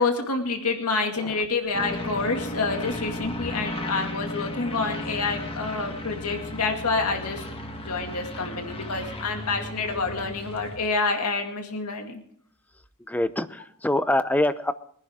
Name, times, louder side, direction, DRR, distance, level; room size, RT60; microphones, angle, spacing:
voice 1, 0.0-7.4 7.8-12.2, left 4 dB, 90° left, 4 dB, 2.2 m, -28 dB
sound 1, 1.7-10.8, left 1 dB, 25° left, 1.6 m, -35 dB
voice 2, 13.1-14.7, left 1 dB, 5° left, 12 dB, 0.6 m, -25 dB
23.0 x 11.0 x 3.7 m, 0.63 s
head